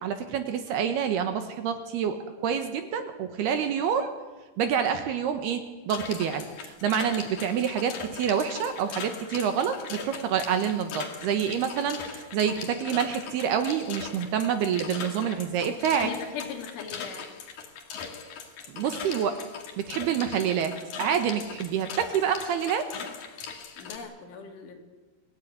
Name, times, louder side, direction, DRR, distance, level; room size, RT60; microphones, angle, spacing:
voice 1, 0.0-4.1 4.6-16.1 18.7-19.4 19.8-22.9, right 8 dB, 70° right, 8 dB, 2.8 m, -27 dB
sound 1, 5.9-24.0, left 6 dB, 50° left, 3.7 m, -40 dB
voice 2, 16.0-17.2 23.8-24.7, left 6 dB, 75° left, 3 dB, 5.2 m, -39 dB
25.5 x 17.0 x 9.6 m, 1.2 s
omnidirectional pair, 5.6 m